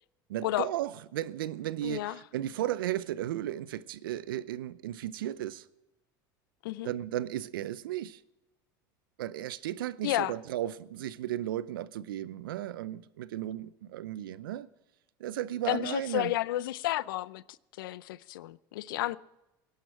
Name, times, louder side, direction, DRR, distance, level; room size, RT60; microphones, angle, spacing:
voice 1, 0.3-5.7 6.8-8.2 9.2-14.7 15.2-16.3, right 12 dB, 85° right, 0.7 m, -35 dB
voice 2, 1.8-2.2 6.6-6.9 10.0-10.3 15.7-17.4 17.8-19.2, left 16 dB, 80° left, 0.5 m, -31 dB
19.5 x 11.5 x 4.6 m
hypercardioid pair, 85°, 11 cm